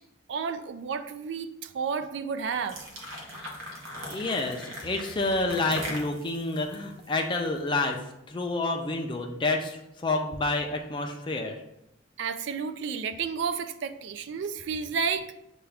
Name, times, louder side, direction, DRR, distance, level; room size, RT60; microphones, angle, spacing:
voice 1, 0.3-2.8 12.2-15.3, right 6 dB, 65° right, 11 dB, 0.3 m, -31 dB
sound 1, 2.5-7.8, equal, 85° right, 0.9 m, -40 dB
voice 2, 4.1-8.0 8.3-11.6, left 2 dB, 25° left, 3 dB, 0.4 m, -29 dB
6.8 x 2.3 x 3.4 m, 0.85 s
head